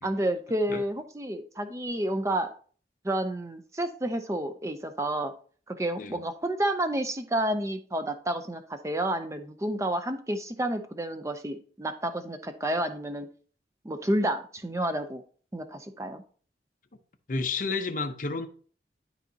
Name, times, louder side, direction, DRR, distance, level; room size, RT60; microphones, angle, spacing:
voice 1, 0.0-2.5 3.0-5.3 5.7-13.3 13.8-15.2 15.5-16.2, right 1 dB, 15° right, 0.6 m, -30 dB
voice 2, 17.3-18.5, left 4 dB, 50° left, 0.7 m, -31 dB
12.0 x 4.1 x 2.8 m
head